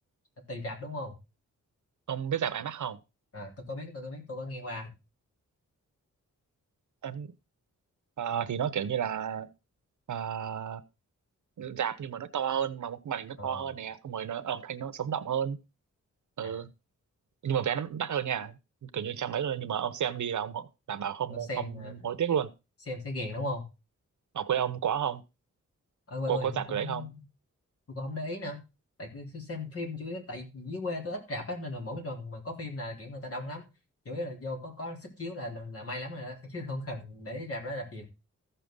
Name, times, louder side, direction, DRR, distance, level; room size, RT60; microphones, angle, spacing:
voice 1, 0.5-1.2 3.3-4.9 13.4-13.7 16.4-16.6 21.3-22.1 22.9-23.6 26.1-27.2 27.9-28.6 29.0-33.7 34.1-38.0, left 1 dB, 50° left, 3.6 m, -37 dB
voice 2, 2.1-3.0 7.0-7.3 8.2-9.5 10.1-10.8 11.6-15.6 16.4-16.7 17.4-22.5 24.3-25.2 26.3-27.1, right 8 dB, 75° right, 0.9 m, -32 dB
14.5 x 6.8 x 3.8 m
wide cardioid pair, 145°, 30 cm